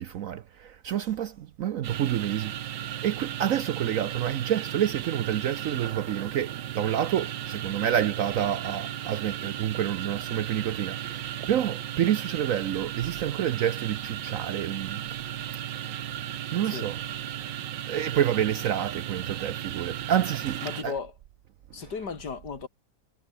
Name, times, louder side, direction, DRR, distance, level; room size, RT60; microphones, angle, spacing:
voice 1, 0.0-15.0 16.5-17.0 17.9-20.9, right 10 dB, 65° right, 0.9 m, -28 dB
sound 1, 1.8-20.8, right 11 dB, 85° right, 1.7 m, -35 dB
voice 2, 20.6-21.1 21.7-22.7, left 5 dB, 70° left, 3.0 m, -35 dB
omnidirectional pair, 1.9 m